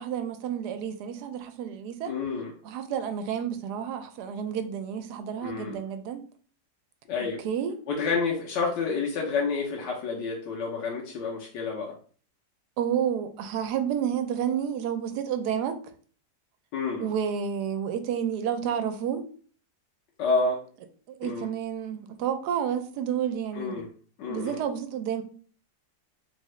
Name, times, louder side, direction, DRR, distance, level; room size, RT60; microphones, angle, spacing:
voice 1, 0.0-2.1 2.6-6.2 7.4-7.8 12.8-15.8 17.0-19.3 21.1-23.8 24.3-25.2, right 8 dB, 75° right, 1.1 m, -30 dB
voice 2, 2.1-2.5 5.4-5.8 7.1-7.4 7.9-12.0 16.7-17.1 20.2-20.6 21.2-21.5 23.5-23.9 24.2-24.6, left 4 dB, 80° left, 1.4 m, -29 dB
3.6 x 3.5 x 3.1 m
omnidirectional pair, 1.9 m